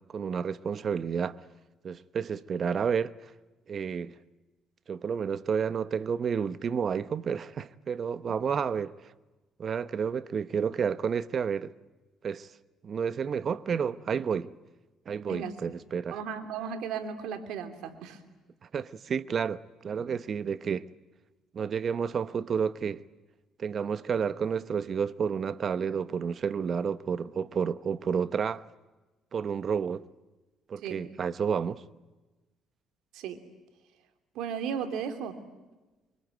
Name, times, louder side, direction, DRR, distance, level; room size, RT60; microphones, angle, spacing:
voice 1, 0.1-1.4 1.8-3.3 3.7-4.2 4.9-8.9 9.6-11.7 12.2-12.5 12.8-14.5 15.1-16.2 18.7-20.9 21.5-23.0 23.6-28.6 29.3-30.1 30.7-31.8, right 6 dB, 50° right, 1.0 m, -30 dB
voice 2, 15.2-15.6 16.1-18.2 30.8-31.0 33.1-33.4 34.3-35.4, right 7 dB, 80° right, 3.0 m, -35 dB
25.0 x 24.5 x 9.3 m
cardioid pair, 90°, 0 cm